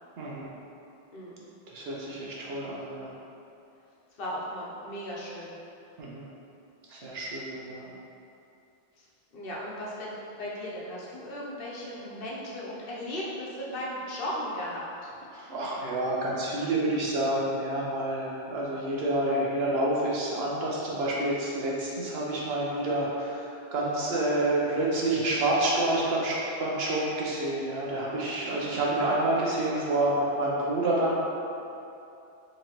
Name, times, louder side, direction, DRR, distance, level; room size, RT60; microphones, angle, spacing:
voice 1, 0.2-0.5 1.7-3.1 6.0-6.3 6.9-7.9 15.3-31.1, right 1 dB, 70° right, -4 dB, 0.9 m, -28 dB
voice 2, 1.1-1.4 4.2-5.6 9.0-9.1 9.3-15.1 28.4-28.7, equal, 65° left, -5 dB, 0.8 m, -36 dB
3.8 x 3.1 x 2.9 m, 2.7 s
omnidirectional pair, 1.1 m